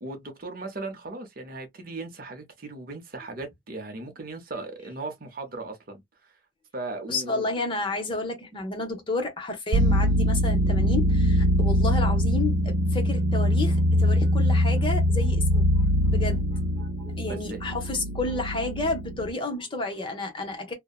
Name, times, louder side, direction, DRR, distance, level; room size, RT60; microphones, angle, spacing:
voice 1, 0.0-6.3 6.7-7.5 17.3-17.6, right 2 dB, 50° right, 0.7 m, -37 dB
voice 2, 7.1-20.7, left 2 dB, 25° left, 0.8 m, -31 dB
sound 1, 9.7-19.3, equal, 70° right, 0.3 m, -23 dB
2.7 x 2.1 x 2.3 m
head